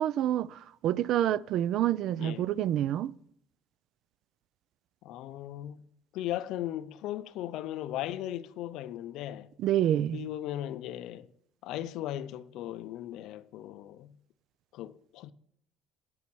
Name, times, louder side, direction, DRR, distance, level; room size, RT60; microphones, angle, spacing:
voice 1, 0.0-3.1 9.6-10.3, right 11 dB, 50° right, 0.3 m, -28 dB
voice 2, 5.0-5.9 6.1-9.5 10.1-11.3 11.6-14.2 14.7-15.3, left 13 dB, 55° left, 0.5 m, -37 dB
9.7 x 7.2 x 6.1 m
cardioid pair, 170°, 0 cm